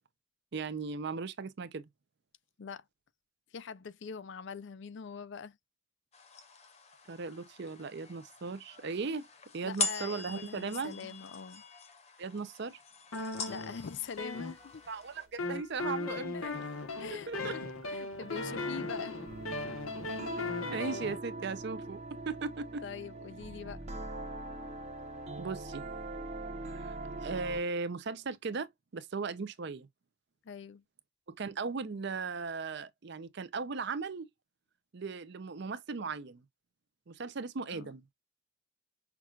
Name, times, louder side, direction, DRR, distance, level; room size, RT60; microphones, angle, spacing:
voice 1, 0.5-1.8 7.1-9.3 9.5-11.2 12.2-12.8 14.9-16.5 17.3-17.6 20.7-22.0 22.3-22.8 25.4-25.9 26.7-29.9 31.3-34.3 34.9-36.4 37.1-38.0, right 4 dB, 55° right, 0.5 m, -37 dB
voice 2, 3.5-5.6 9.6-11.6 13.5-14.8 16.3-16.6 17.0-19.2 22.8-23.8 30.4-30.8 37.7-37.9, left 6 dB, 55° left, 0.4 m, -43 dB
sound 1, 6.1-15.3, left 4 dB, 30° left, 0.8 m, -42 dB
sound 2, 13.1-15.0 15.4-21.2, left 2 dB, 90° left, 1.2 m, -38 dB
sound 3, 18.2-27.7, right 2 dB, 30° right, 0.9 m, -42 dB
5.9 x 2.3 x 2.3 m
head